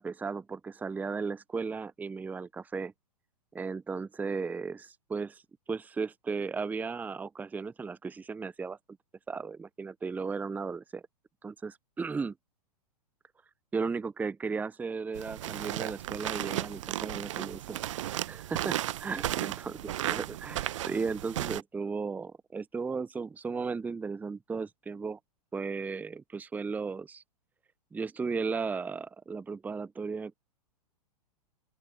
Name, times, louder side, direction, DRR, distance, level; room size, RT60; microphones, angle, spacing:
voice 1, 0.0-2.9 3.5-5.4 5.7-8.8 9.3-11.0 11.4-12.3 13.7-19.8 20.1-25.2 25.5-27.2 27.9-30.4, right 4 dB, 10° right, 0.9 m, -35 dB
sound 1, 15.1-21.6, right 13 dB, 50° right, 1.3 m, -34 dB
open air
figure-of-eight pair, 105°, 20 cm